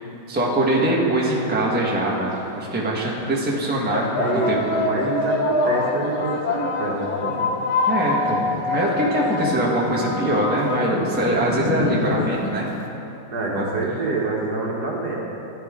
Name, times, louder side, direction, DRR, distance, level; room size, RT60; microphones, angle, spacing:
voice 1, 0.3-4.1 4.5-4.6 7.9-8.4 8.6-12.7 13.6-13.7, right 1 dB, 5° right, -4 dB, 1.1 m, -22 dB
sound 1, 1.8-1.9 2.8-3.0 3.9-12.8, left 3 dB, 75° left, 1.9 m, -25 dB
voice 2, 3.9-7.6 13.3-15.2, right 2 dB, 55° right, -3 dB, 1.6 m, -26 dB
14.5 x 10.0 x 3.7 m, 2.9 s
omnidirectional pair, 2.3 m